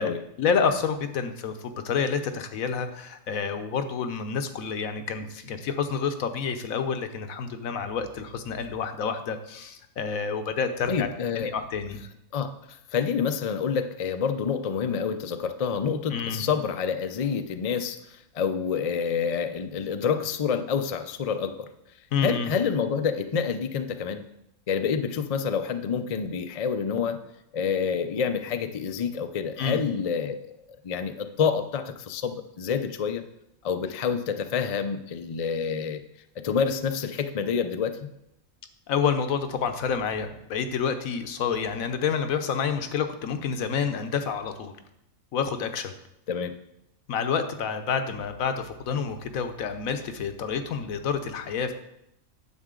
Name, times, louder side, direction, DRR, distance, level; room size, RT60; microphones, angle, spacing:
voice 1, 0.0-11.1 11.4-12.0 16.1-16.4 22.1-22.5 29.6-29.8 38.9-44.7 45.3-45.9 47.1-51.7, left 6 dB, 75° left, 8 dB, 1.2 m, -28 dB
voice 2, 10.9-11.5 12.3-21.7 22.2-24.2 24.7-27.2 27.5-30.5 30.8-33.2 33.6-36.0 36.4-38.0 46.3-46.5, left 6 dB, 60° left, 8 dB, 0.3 m, -28 dB
9.7 x 7.2 x 3.7 m, 0.82 s
omnidirectional pair, 1.4 m